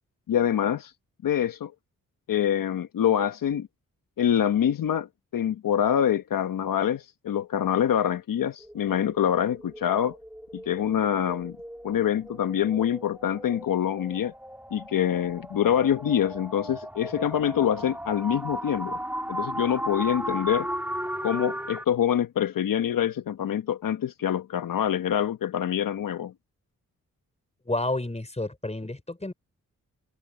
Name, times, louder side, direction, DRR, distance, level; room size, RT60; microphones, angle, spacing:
voice 1, 0.3-0.9 1.2-1.7 2.3-3.7 4.2-5.1 5.3-10.2 10.5-11.6 11.8-14.3 14.7-19.0 19.3-20.7 21.2-26.3, left 9 dB, 75° left, 1.3 m, -25 dB
sound 1, 8.6-21.8, equal, 5° right, 4.2 m, -36 dB
voice 2, 27.6-29.3, left 2 dB, 20° left, 5.0 m, -30 dB
cardioid pair, 50°, 33 cm